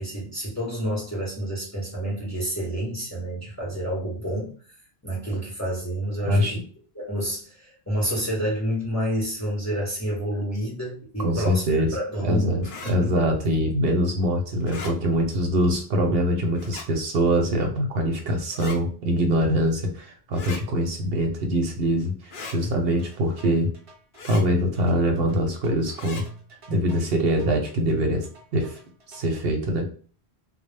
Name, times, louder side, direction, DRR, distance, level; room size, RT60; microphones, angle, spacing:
voice 1, 0.0-4.5 5.0-6.7 6.9-11.7 11.9-13.1, right 1 dB, 20° left, -5 dB, 0.7 m, -29 dB
voice 2, 6.2-6.6 11.2-11.9 12.2-23.7 24.2-26.2 26.7-28.3 28.5-28.8 29.1-29.9, equal, 70° right, 3 dB, 0.8 m, -23 dB
sound 1, 12.6-12.9 14.6-14.9 16.6-16.9 18.5-18.8 20.3-20.6 22.3-22.6 24.1-24.4 25.9-26.2, left 4 dB, 60° left, 0.7 m, -38 dB
sound 2, 22.6-29.4, equal, 45° right, 0.4 m, -41 dB
2.1 x 2.0 x 3.2 m, 0.42 s
omnidirectional pair, 1.1 m